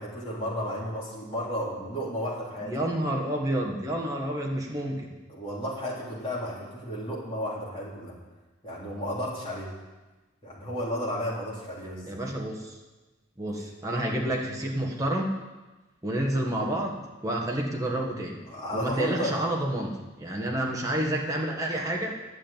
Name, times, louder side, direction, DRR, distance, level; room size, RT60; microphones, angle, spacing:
voice 1, 0.0-2.7 5.3-8.1 8.6-9.7 10.4-12.2 13.5-13.7 18.5-19.4, equal, 25° left, -6 dB, 3.5 m, -33 dB
voice 2, 2.6-5.2 12.0-12.8 13.4-15.3 16.0-18.4 18.7-22.1, right 1 dB, 15° right, -1 dB, 1.6 m, -29 dB
11.0 x 7.5 x 9.0 m, 1.2 s
head